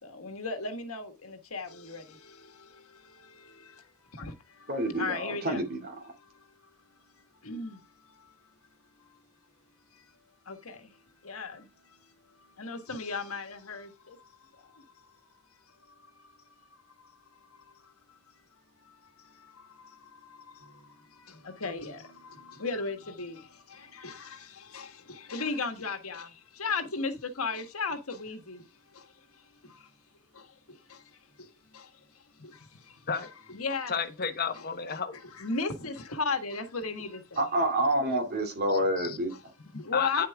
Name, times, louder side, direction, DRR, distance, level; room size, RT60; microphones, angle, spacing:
voice 1, 0.0-3.8 4.1-5.7 6.1-6.4 7.4-7.8 8.1-8.3 9.0-9.2 10.4-11.0 11.2-12.0 12.6-14.9 16.2-16.3 16.7-17.9 18.8-28.7 28.9-29.1 29.6-29.9 30.3-31.9 32.4-33.9 35.1-37.5 39.8-40.3, left 4 dB, 75° left, 1.6 m, -37 dB
voice 2, 4.7-5.9 37.4-39.3, right 1 dB, 45° right, 2.5 m, -28 dB
voice 3, 33.9-35.1 38.7-39.2 39.9-40.3, left 6 dB, 45° left, 1.1 m, -32 dB
9.8 x 7.5 x 3.5 m
head